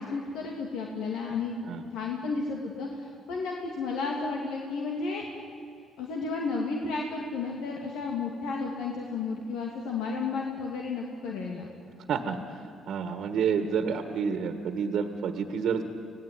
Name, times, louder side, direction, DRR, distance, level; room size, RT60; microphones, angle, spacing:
voice 1, 0.0-1.6 1.9-5.2 6.0-11.7, left 4 dB, 90° left, -1 dB, 2.6 m, -32 dB
voice 2, 12.9-15.8, right 6 dB, 70° right, 8 dB, 1.7 m, -29 dB
26.0 x 17.5 x 9.7 m, 2.6 s
cardioid pair, 85°, 0 cm